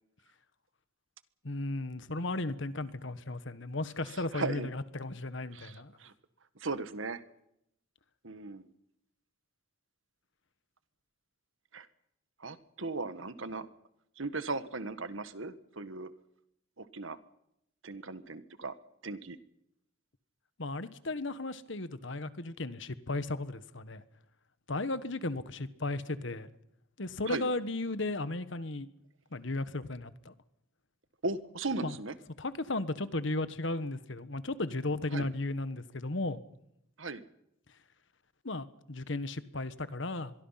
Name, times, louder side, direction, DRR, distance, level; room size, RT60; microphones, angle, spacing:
voice 1, 1.4-5.9 20.6-24.0 24.7-26.5 27.0-28.9 29.3-30.3 31.8-31.9 32.4-36.4 38.4-40.3, left 2 dB, 60° left, 1.4 m, -35 dB
voice 2, 4.1-4.7 5.5-6.1 6.6-7.2 8.2-8.7 11.7-11.9 12.4-13.7 14.2-16.1 16.8-17.2 17.8-18.7 19.0-19.4 27.3-27.5 31.2-32.2 35.1-35.3 37.0-37.2, right 3 dB, 70° right, 1.5 m, -37 dB
25.5 x 22.5 x 5.8 m
head